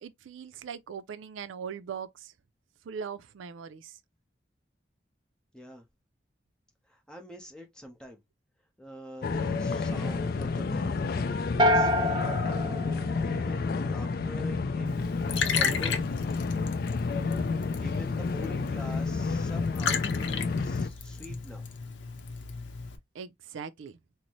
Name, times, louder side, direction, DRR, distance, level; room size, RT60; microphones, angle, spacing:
voice 1, 0.0-2.3 2.9-4.0 18.4-18.9 23.1-23.9, right 6 dB, 90° right, 0.4 m, -41 dB
voice 2, 5.5-5.9 6.9-8.2 8.8-11.0 11.4-15.2 15.5-16.0 17.8-21.7, left 1 dB, 5° left, 0.7 m, -45 dB
sound 1, 9.2-20.9, left 4 dB, 50° left, 0.3 m, -30 dB
sound 2, 11.6-13.9, equal, 25° right, 0.4 m, -27 dB
Liquid, 14.9-23.0, left 6 dB, 80° left, 0.7 m, -35 dB
3.9 x 2.0 x 2.9 m
head